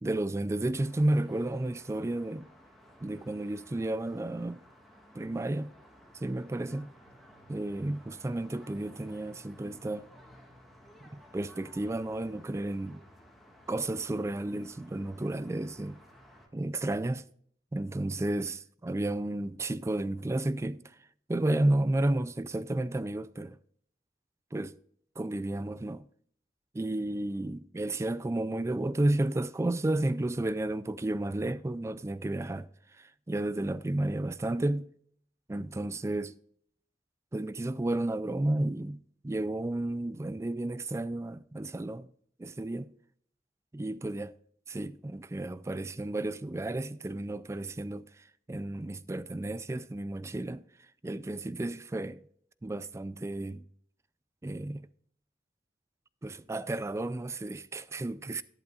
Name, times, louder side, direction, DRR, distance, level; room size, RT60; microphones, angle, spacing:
voice 1, 0.0-2.5 3.0-4.6 5.1-5.7 6.2-6.9 7.5-10.1 11.3-13.0 13.7-16.0 16.5-17.2 17.7-20.8 21.3-23.6 24.5-24.7 25.2-26.0 26.7-32.7 33.0-34.9 35.5-36.3 37.3-42.1 42.4-42.9 43.7-44.3 44.7-50.6 51.0-52.2 52.6-53.6 54.4-54.8 56.2-58.4, right 1 dB, 15° right, 0.3 m, -32 dB
sound 1, 0.8-16.5, equal, ahead, 1.8 m, -56 dB
12.0 x 11.5 x 2.4 m
head